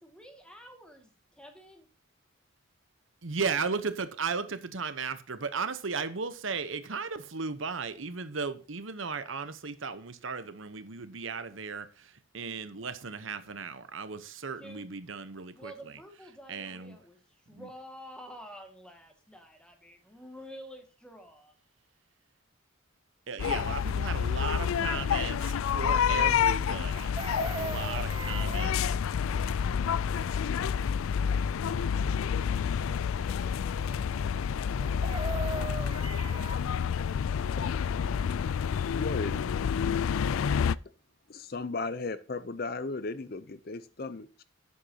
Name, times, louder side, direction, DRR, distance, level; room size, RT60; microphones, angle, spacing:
voice 1, 0.0-1.9 14.6-14.9 15.5-17.2 17.5-21.5 32.5-34.3, equal, 5° left, 2.0 m, -50 dB
voice 2, 3.2-16.0 16.5-17.0 17.5-17.7 23.3-27.1 27.5-29.0, right 5 dB, 75° right, 1.0 m, -36 dB
sound 1, 23.4-40.8, left 7 dB, 90° left, 0.4 m, -29 dB
Chicken rooster, 26.9-28.7 34.8-36.6 38.8-38.9 39.2-39.5, right 3 dB, 25° right, 0.4 m, -38 dB
voice 3, 38.9-39.4 41.3-44.4, left 3 dB, 50° left, 0.6 m, -35 dB
11.0 x 8.5 x 2.9 m
head